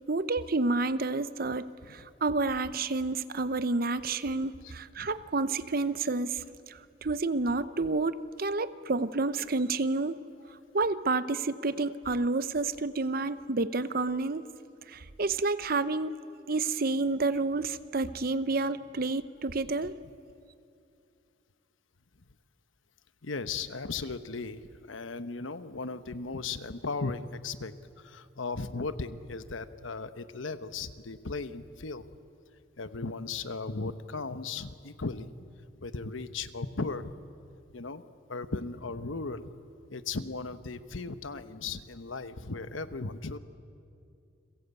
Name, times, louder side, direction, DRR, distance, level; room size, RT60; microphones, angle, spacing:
voice 1, 0.1-10.2 10.7-14.4 14.9-16.1 16.5-20.0, right 3 dB, 50° right, 14 dB, 0.8 m, -30 dB
voice 2, 23.2-32.1 32.8-35.3 35.8-37.1 37.7-38.0 38.3-39.5 39.9-43.4, left 3 dB, 85° left, 11 dB, 1.1 m, -36 dB
29.5 x 22.0 x 8.3 m, 2.5 s
head